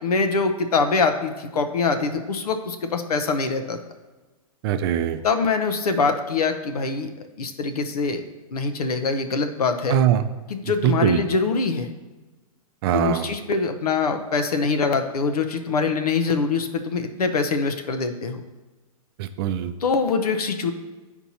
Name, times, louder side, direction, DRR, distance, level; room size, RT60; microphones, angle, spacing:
voice 1, 0.0-3.8 5.2-7.1 7.4-8.2 8.5-10.0 10.5-11.9 12.9-18.4 19.8-20.7, left 4 dB, 90° left, 7 dB, 0.7 m, -24 dB
voice 2, 4.6-5.2 9.9-10.3 10.6-11.2 12.8-13.3 19.2-19.7, right 10 dB, 40° right, 10 dB, 0.4 m, -22 dB
9.8 x 4.4 x 2.8 m, 1.2 s
hypercardioid pair, 135°, 19 cm